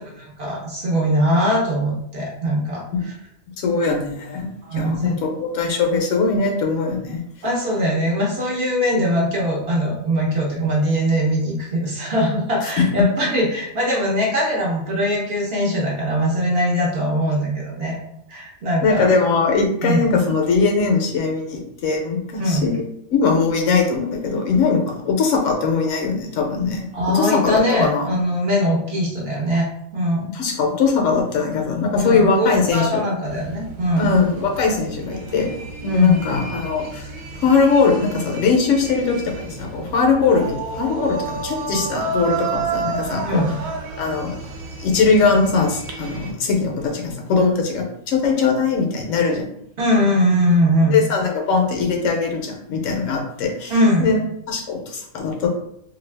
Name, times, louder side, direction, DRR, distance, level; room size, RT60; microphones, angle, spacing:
voice 1, 0.0-2.8 4.6-5.1 7.4-18.0 18.3-19.0 19.8-20.0 22.4-22.6 26.9-30.3 32.0-34.1 35.9-36.2 43.2-43.5 49.8-50.9 53.7-54.1, equal, 55° right, -3 dB, 0.8 m, -21 dB
voice 2, 3.6-4.5 4.7-7.2 12.6-13.0 18.8-22.8 23.1-28.1 30.3-33.0 34.0-35.5 35.8-37.1 37.3-43.4 44.0-44.4 44.8-49.5 50.9-54.2 54.5-55.5, left 4 dB, 70° left, 1 dB, 0.9 m, -20 dB
sound 1, 33.3-46.3, right 4 dB, 90° right, 1.0 m, -31 dB
2.5 x 2.3 x 3.2 m, 0.74 s
omnidirectional pair, 1.4 m